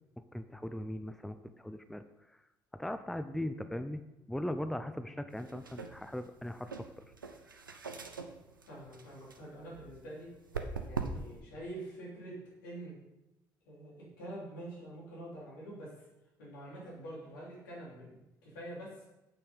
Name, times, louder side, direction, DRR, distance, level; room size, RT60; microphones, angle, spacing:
voice 1, 0.3-2.4 2.7-4.0 4.3-7.0, left 1 dB, 5° left, 10 dB, 0.6 m, -39 dB
sound 1, 5.3-11.4, right 4 dB, 85° right, 0.6 m, -43 dB
voice 2, 8.7-10.3 10.8-13.0 13.7-15.9 16.4-19.0, right 1 dB, 75° left, -5 dB, 3.6 m, -46 dB
8.7 x 7.8 x 5.4 m, 0.96 s
figure-of-eight pair, 45°, 11 cm